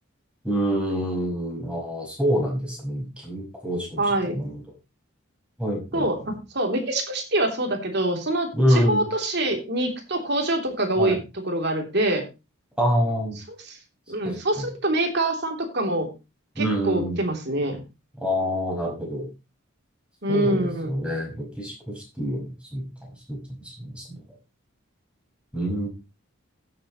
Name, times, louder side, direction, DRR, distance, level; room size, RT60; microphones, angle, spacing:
voice 1, 0.4-4.0 4.3-4.6 5.6-6.1 8.5-9.1 11.0-11.2 12.8-13.4 14.2-14.7 16.6-17.2 18.2-19.3 20.3-22.8 23.3-24.2 25.5-25.9, equal, 5° right, -2 dB, 5.5 m, -26 dB
voice 2, 4.0-4.4 5.9-12.2 13.7-13.8 14.1-16.1 16.6-17.8 20.2-20.9, right 1 dB, 55° right, 3 dB, 3.2 m, -25 dB
16.5 x 8.1 x 3.1 m, 0.27 s
head